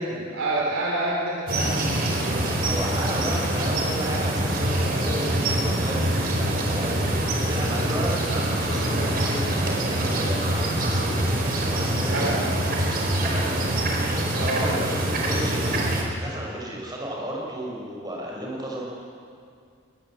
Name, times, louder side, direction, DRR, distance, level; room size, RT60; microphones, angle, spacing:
voice 1, 0.0-1.8 12.1-12.5 14.3-14.7, right 2 dB, 85° right, -3 dB, 3.3 m, -27 dB
sound 1, 1.5-16.0, right 1 dB, 45° right, 4.5 m, -24 dB
voice 2, 2.6-12.3 13.2-13.6 14.3-15.8 16.1-18.8, right 1 dB, 20° right, -2 dB, 5.5 m, -34 dB
22.0 x 21.0 x 7.6 m, 2.3 s
head